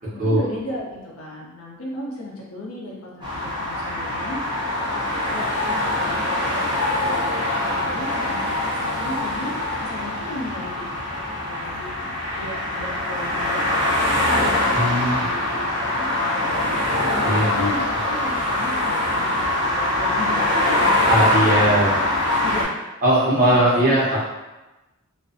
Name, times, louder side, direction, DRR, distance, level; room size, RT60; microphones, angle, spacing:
voice 1, 0.1-4.4 4.9-9.6 9.9-11.1 11.4-12.1 12.3-13.9 14.3-16.8 17.4-20.5 20.8-22.7 23.4-24.0, left 1 dB, 85° left, -4 dB, 0.7 m, -35 dB
sound 1, 3.2-22.6, left 1 dB, 20° right, 0.6 m, -23 dB
voice 2, 14.7-15.2 17.2-17.7 21.1-21.9 23.0-24.2, right 1 dB, 40° right, -8 dB, 0.9 m, -19 dB
2.5 x 2.1 x 2.5 m, 1.1 s
head